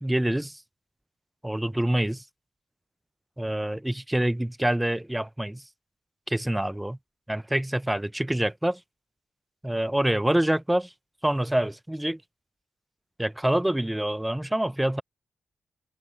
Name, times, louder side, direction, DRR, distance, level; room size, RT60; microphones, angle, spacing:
voice 1, 0.0-0.6 1.4-2.2 3.4-5.6 6.3-7.0 7.3-8.8 9.6-10.9 11.2-12.2 13.2-15.0, right 1 dB, 10° right, 0.3 m, -26 dB
cardioid pair, 70°, 0 cm